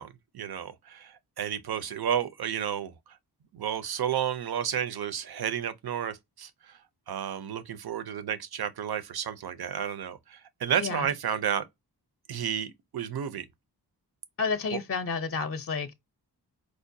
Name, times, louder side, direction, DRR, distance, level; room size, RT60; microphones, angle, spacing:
voice 1, 0.0-2.9 3.5-6.8 7.1-11.6 12.3-13.5 14.7-14.8, right 9 dB, 70° right, 0.6 m, -32 dB
voice 2, 10.8-11.1 14.4-15.9, left 5 dB, 35° left, 0.5 m, -30 dB
4.8 x 2.1 x 2.6 m
wide cardioid pair, 60°, 40 cm